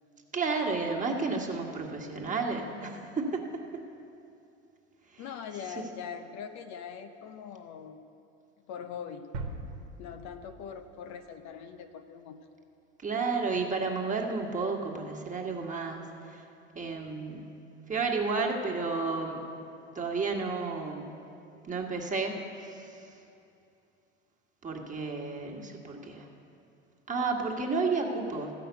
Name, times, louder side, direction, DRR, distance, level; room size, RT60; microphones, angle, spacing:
voice 1, 0.3-3.8 13.0-16.0 16.3-16.4 16.7-17.5 17.9-19.4 19.9-21.1 21.6-22.3 22.6-23.0 24.6-26.3 27.1-28.5, right 4 dB, 20° right, 0 dB, 1.7 m, -31 dB
voice 2, 5.2-8.1 8.7-9.3 10.0-12.5, left 7 dB, 50° left, 7 dB, 0.8 m, -42 dB
sound 1, 9.3-11.2, right 2 dB, 75° right, 1.3 m, -40 dB
14.0 x 6.0 x 8.0 m, 2.7 s
hypercardioid pair, 80°, 35 cm